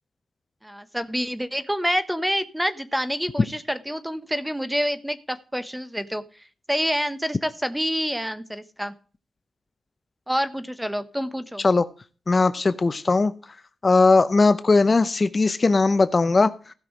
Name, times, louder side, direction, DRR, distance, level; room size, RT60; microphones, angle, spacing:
voice 1, 0.6-6.2 6.7-8.9 10.3-11.6, equal, 5° right, 13 dB, 1.1 m, -27 dB
voice 2, 12.3-13.3 13.8-16.7, left 3 dB, 35° left, 13 dB, 0.7 m, -19 dB
16.0 x 6.0 x 4.9 m, 0.38 s
cardioid pair, 85°, 0 cm